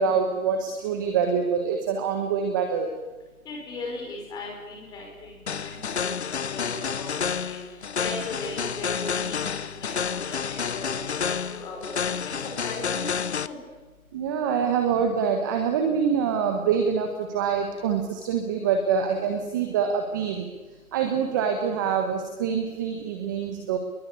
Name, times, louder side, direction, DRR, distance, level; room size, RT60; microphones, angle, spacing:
voice 1, 0.0-2.9 14.1-20.5 20.9-23.8, right 6 dB, 15° right, 5 dB, 1.3 m, -25 dB
voice 2, 3.4-6.1 6.5-7.1 7.4-7.6 7.9-11.9 12.6-13.1 13.4-13.6, left 2 dB, 10° left, -1 dB, 5.8 m, -38 dB
sound 1, 5.5-13.5, left 6 dB, 50° left, 1.1 m, -29 dB
27.5 x 22.0 x 8.5 m, 1.2 s
hypercardioid pair, 160°, 43 cm